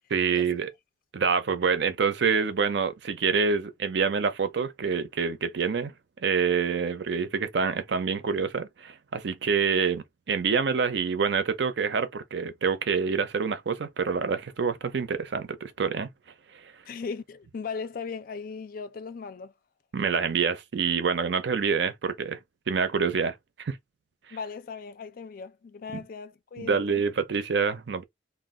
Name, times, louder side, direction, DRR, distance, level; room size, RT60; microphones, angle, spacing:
voice 1, 0.1-0.7 1.1-5.9 6.2-16.1 19.9-22.4 22.7-23.8 25.9-26.0 26.6-28.0, right 5 dB, 65° right, 0.5 m, -26 dB
voice 2, 16.9-19.5 24.3-27.0, left 5 dB, 50° left, 0.4 m, -38 dB
2.2 x 2.1 x 3.5 m
head